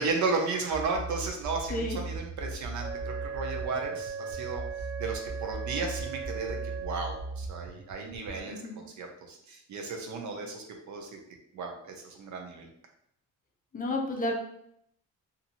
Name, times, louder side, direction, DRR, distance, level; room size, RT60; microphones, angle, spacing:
voice 1, 0.0-4.6 5.0-11.2 11.5-12.7, right 4 dB, 65° right, 2 dB, 0.7 m, -34 dB
sound 1, 0.7-8.4, right 3 dB, 25° right, 0.5 m, -38 dB
Wind instrument woodwind instrument, 2.8-7.4, right 7 dB, 85° right, 1.2 m, -39 dB
voice 2, 8.5-8.8 13.7-14.3, left 1 dB, 25° left, 1 dB, 0.6 m, -31 dB
2.7 x 2.6 x 2.8 m, 0.71 s
cardioid pair, 120°, 31 cm